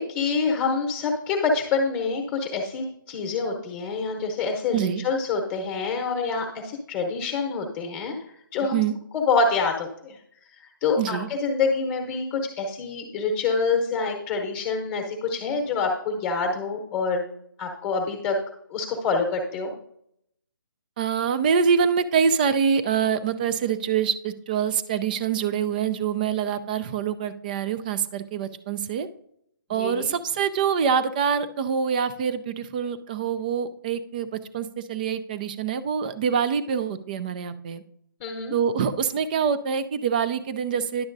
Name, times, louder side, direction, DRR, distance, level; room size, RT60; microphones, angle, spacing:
voice 1, 0.0-8.1 8.5-8.8 9.1-10.2 10.8-17.2 17.6-18.4 18.7-19.7 29.7-30.1 38.2-38.6, left 4 dB, 15° left, 2 dB, 1.0 m, -26 dB
voice 2, 4.7-5.0 8.7-8.9 11.0-11.3 21.0-29.1 29.7-37.8 38.5-41.1, right 7 dB, 25° right, 12 dB, 0.4 m, -25 dB
10.5 x 6.9 x 2.6 m, 0.72 s
figure-of-eight pair, 155°, 12 cm